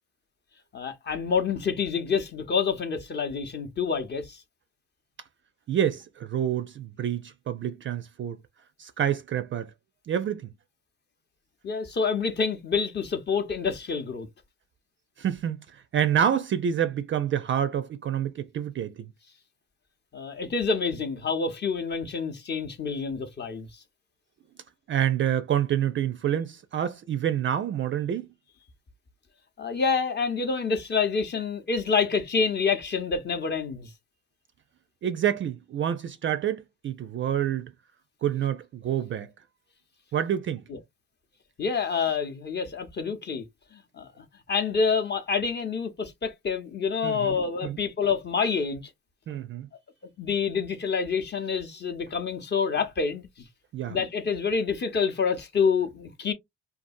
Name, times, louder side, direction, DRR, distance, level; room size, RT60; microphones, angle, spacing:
voice 1, 0.7-4.4 11.6-14.3 20.1-23.7 29.6-33.9 40.7-40.8 41.6-43.4 43.9-48.8 50.2-53.3 53.9-56.3, left 5 dB, 35° left, 0.7 m, -27 dB
voice 2, 5.7-8.4 8.8-9.7 10.1-10.5 15.2-19.1 24.9-28.3 35.0-37.7 38.2-39.3 40.1-40.6 47.0-47.4 47.6-47.8 49.3-49.7 53.7-54.0, right 9 dB, 40° right, 0.4 m, -27 dB
2.6 x 2.4 x 2.5 m
supercardioid pair, 85°, 32 cm